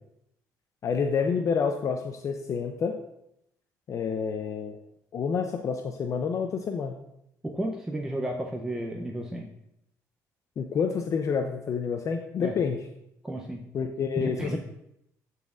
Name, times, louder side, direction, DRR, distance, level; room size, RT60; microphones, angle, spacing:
voice 1, 0.8-2.9 3.9-4.8 5.1-6.9 10.6-12.8 13.7-14.6, left 6 dB, 50° left, 5 dB, 0.5 m, -28 dB
voice 2, 7.4-9.5 12.4-12.5 13.2-13.6 14.2-14.6, right 1 dB, 5° right, 0 dB, 0.6 m, -32 dB
10.5 x 4.1 x 2.4 m, 0.79 s
cardioid pair, 95°, 7 cm